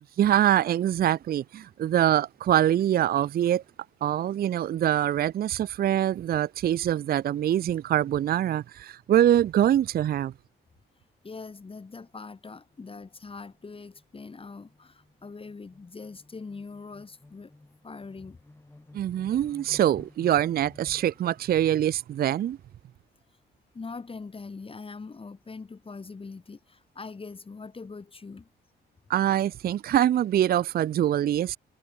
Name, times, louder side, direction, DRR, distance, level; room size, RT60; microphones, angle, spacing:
voice 1, 0.2-3.6 4.0-10.3 18.9-22.6 29.1-31.6, right 11 dB, 50° right, 0.5 m, -24 dB
voice 2, 10.9-17.5 17.8-18.4 23.7-28.5, left 4 dB, 25° left, 2.6 m, -42 dB
sound 1, 11.0-11.3 11.6-11.8 12.0-21.7, left 2 dB, 10° left, 2.0 m, -55 dB
cardioid pair, 90°, 20 cm